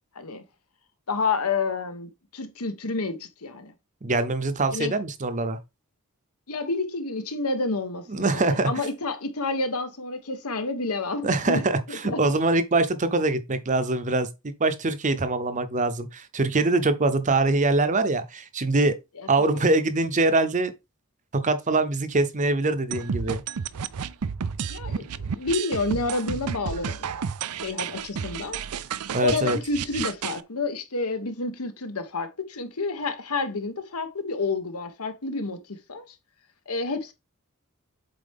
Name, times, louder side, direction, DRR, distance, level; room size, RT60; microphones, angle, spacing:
voice 1, 1.1-3.7 4.7-5.0 6.5-11.6 11.9-12.2 19.2-19.6 24.7-27.1 27.6-28.6 29.1-36.0 36.7-37.1, left 3 dB, 75° left, 1.3 m, -29 dB
voice 2, 4.0-5.6 8.1-8.7 11.2-11.8 12.0-19.0 19.3-20.7 21.3-23.4 29.1-29.6, right 2 dB, 35° right, 0.7 m, -23 dB
sound 1, 22.9-30.4, right 7 dB, 85° right, 0.5 m, -31 dB
7.6 x 4.4 x 3.6 m
head